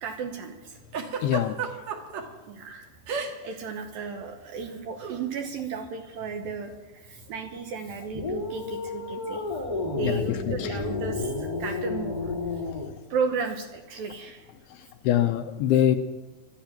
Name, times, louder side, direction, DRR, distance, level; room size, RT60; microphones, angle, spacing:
voice 1, 0.0-0.8 2.5-2.9 3.4-9.4 9.9-12.3 13.1-14.5, right 5 dB, 75° right, 5 dB, 2.3 m, -34 dB
Giggle, 0.9-2.2 3.1-3.6 3.8-4.1 5.0-5.2, right 6 dB, 55° right, 2.2 m, -32 dB
voice 2, 1.2-1.6 10.0-10.8 12.7-12.8 14.7-16.0, left 11 dB, 80° left, 7 dB, 2.4 m, -24 dB
sound 1, 8.1-12.9, left 3 dB, 45° left, 0.5 m, -31 dB
17.5 x 13.0 x 5.9 m, 1.1 s
omnidirectional pair, 5.1 m